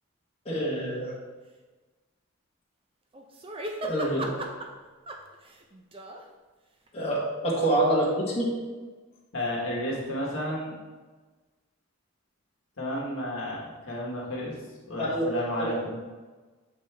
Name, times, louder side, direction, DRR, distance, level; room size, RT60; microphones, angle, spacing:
voice 1, 0.4-1.1 3.8-4.3 6.9-8.5 15.0-15.2 15.6-15.7, right 1 dB, 25° left, -6 dB, 1.4 m, -26 dB
sound 1, 3.1-4.7 5.1-6.2 6.9-7.0, right 2 dB, 25° right, 0.5 m, -36 dB
voice 2, 9.3-10.7 12.8-14.5 14.9-16.0, left 1 dB, 60° left, -4 dB, 1.5 m, -32 dB
7.0 x 5.2 x 3.3 m, 1.3 s
head